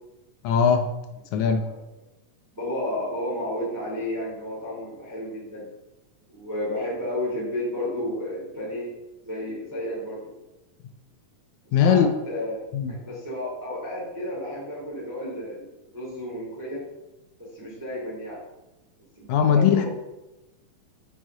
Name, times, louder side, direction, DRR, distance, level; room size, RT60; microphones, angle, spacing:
voice 1, 0.4-0.9 1.3-1.6 11.7-12.1 12.7-12.9 19.3-19.9, left 7 dB, 75° left, 6 dB, 1.8 m, -19 dB
voice 2, 2.5-5.7 6.3-8.9 9.2-10.3 11.8-12.6 13.0-15.6 15.9-16.8 17.5-18.4 19.2-19.3 19.5-19.9, left 1 dB, 5° right, -6 dB, 2.4 m, -32 dB
8.9 x 6.4 x 3.8 m, 0.98 s
omnidirectional pair, 3.7 m